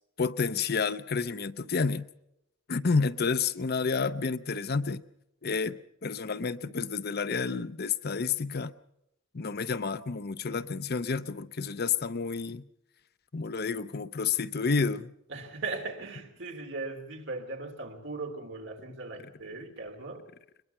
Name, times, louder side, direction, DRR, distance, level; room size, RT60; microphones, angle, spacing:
voice 1, 0.2-2.1 2.7-5.0 5.4-8.7 9.3-12.7 13.3-15.1, left 5 dB, 55° left, 0.7 m, -30 dB
voice 2, 15.3-20.2, right 3 dB, 70° right, 3.1 m, -38 dB
22.5 x 21.5 x 5.6 m
head